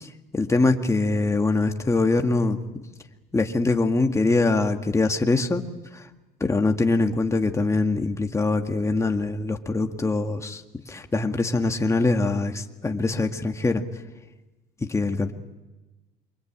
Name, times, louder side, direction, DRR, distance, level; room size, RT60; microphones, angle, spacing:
voice 1, 0.0-2.6 3.3-5.6 5.9-6.0 6.4-10.6 10.9-13.8 14.8-15.3, left 3 dB, 15° left, 4 dB, 1.9 m, -23 dB
28.0 x 24.0 x 8.8 m, 1.1 s
cardioid pair, 110°, 17 cm